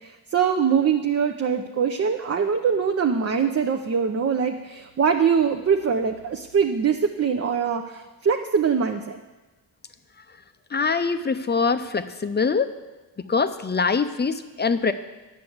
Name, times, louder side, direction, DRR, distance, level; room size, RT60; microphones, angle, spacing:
voice 1, 0.0-9.2, right 6 dB, 35° right, 5 dB, 0.7 m, -23 dB
voice 2, 10.7-12.7 13.2-14.9, left 5 dB, 25° left, 10 dB, 0.6 m, -23 dB
9.6 x 7.0 x 7.9 m, 1.2 s
cardioid pair, 100°, 43 cm